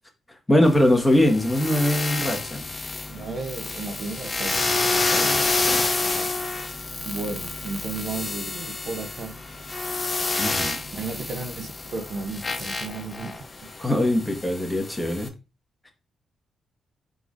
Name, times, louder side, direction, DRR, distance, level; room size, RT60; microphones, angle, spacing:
voice 1, 0.5-2.7 5.0-5.8 10.4-10.8 13.8-15.3 15.8-15.9, left 1 dB, 15° left, 1.4 m, -22 dB
sound 1, 0.6-15.3, left 3 dB, 35° left, 0.7 m, -29 dB
voice 2, 3.1-4.8 6.0-6.3 7.0-9.4 10.9-13.4, right 3 dB, 60° right, 0.8 m, -34 dB
4.6 x 4.0 x 2.5 m
supercardioid pair, 60°, 0 cm